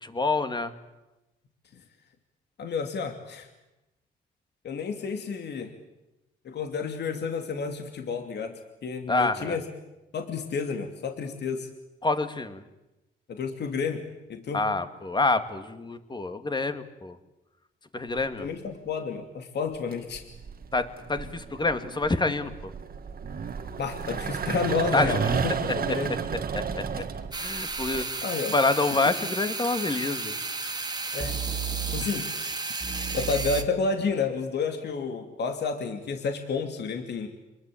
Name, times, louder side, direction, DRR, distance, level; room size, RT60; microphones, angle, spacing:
voice 1, 0.0-0.7 9.1-9.6 12.0-12.6 14.5-17.2 17.9-18.5 20.7-22.7 24.9-25.2 26.5-27.0 27.4-28.2 28.5-30.4, left 3 dB, 20° left, 9 dB, 2.3 m, -27 dB
voice 2, 2.6-3.5 4.6-5.7 6.4-9.6 10.1-11.7 13.3-14.0 14.3-14.6 18.4-20.2 23.8-26.2 28.2-28.5 29.0-29.1 31.1-31.4 31.9-32.3 33.1-37.3, left 5 dB, 60° left, 5 dB, 2.7 m, -30 dB
sound 1, 18.2-18.6 19.7-28.0, right 6 dB, 45° right, 1.9 m, -32 dB
sound 2, 27.3-33.6, right 4 dB, 20° right, 2.3 m, -32 dB
26.5 x 21.5 x 8.7 m, 0.99 s
cardioid pair, 90°, 20 cm